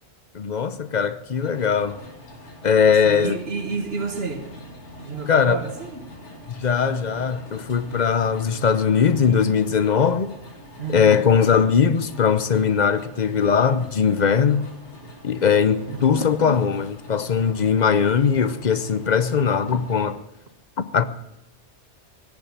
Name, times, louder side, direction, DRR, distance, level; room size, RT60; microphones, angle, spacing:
voice 1, 0.3-2.0 2.6-3.4 5.3-5.6 6.5-10.3 10.9-14.7 15.2-20.2 20.8-21.1, left 6 dB, 45° left, 0.7 m, -20 dB
sound 1, 1.3-20.1, left 1 dB, 85° left, 2.8 m, -44 dB
voice 2, 3.0-4.5 5.0-6.1 10.8-11.3 15.9-16.3, right 4 dB, 60° right, 1.7 m, -30 dB
17.5 x 7.0 x 9.0 m
omnidirectional pair, 1.2 m